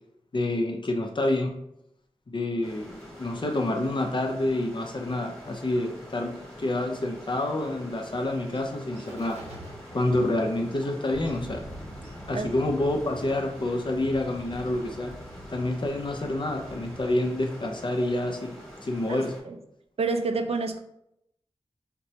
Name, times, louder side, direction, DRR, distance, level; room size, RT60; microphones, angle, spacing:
voice 1, 0.3-1.5 2.3-9.4 9.9-11.6 12.3-15.1 15.5-19.3, left 1 dB, 45° left, 3 dB, 0.5 m, -28 dB
sound 1, 2.6-19.4, equal, 5° left, 1.2 m, -46 dB
Bird, 7.2-18.5, right 1 dB, 90° right, 1.1 m, -52 dB
sound 2, 11.1-17.1, equal, 85° left, 0.9 m, -44 dB
voice 2, 19.1-19.6 20.0-20.8, right 3 dB, 70° right, 6 dB, 0.4 m, -28 dB
4.3 x 2.0 x 2.7 m, 0.80 s
wide cardioid pair, 60°, 11 cm